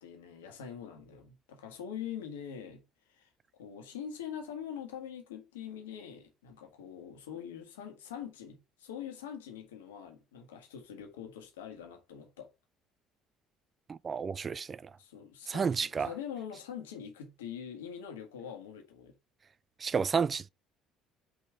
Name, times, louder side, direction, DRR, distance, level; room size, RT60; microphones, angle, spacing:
voice 1, 0.0-2.8 3.1-3.3 3.6-12.5 15.0-19.1, left 8 dB, 75° left, 1.4 m, -44 dB
voice 2, 13.9-14.9 15.5-16.1 19.8-20.5, right 6 dB, 30° right, 0.3 m, -31 dB
5.2 x 3.8 x 4.7 m
figure-of-eight pair, 55°, 0 cm